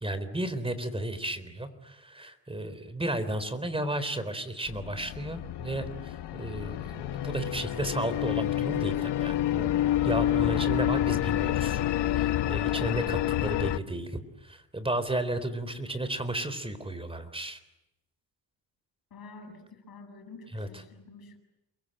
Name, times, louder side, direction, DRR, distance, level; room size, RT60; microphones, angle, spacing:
voice 1, 0.0-9.7 10.0-11.8 12.1-17.6 20.5-20.7, right 1 dB, 15° right, 12 dB, 3.8 m, -33 dB
sound 1, 4.7-13.8, left 13 dB, 75° left, 1.2 m, -28 dB
voice 2, 19.1-21.4, left 3 dB, 60° left, 5 dB, 7.9 m, -48 dB
29.5 x 22.5 x 9.0 m, 0.91 s
cardioid pair, 105°, 42 cm